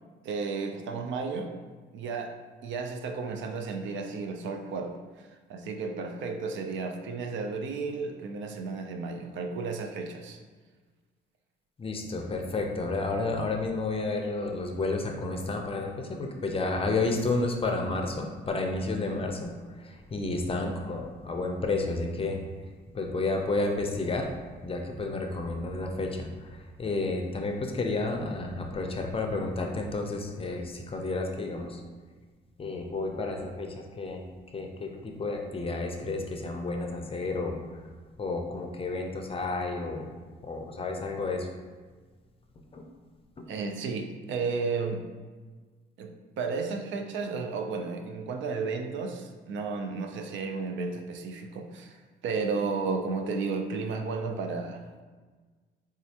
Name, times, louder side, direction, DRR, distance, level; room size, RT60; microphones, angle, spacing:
voice 1, 0.2-1.5 1.9-2.3 2.6-10.4 43.5-45.0 46.0-55.0, right 4 dB, 70° right, 5 dB, 0.4 m, -33 dB
voice 2, 11.8-22.4 22.9-24.3 24.6-31.8 32.6-34.2 34.5-37.6 38.2-40.1 40.4-41.5 42.7-42.8, left 3 dB, 30° left, 3 dB, 0.5 m, -31 dB
4.2 x 2.4 x 2.8 m, 1.4 s
cardioid pair, 90°, 20 cm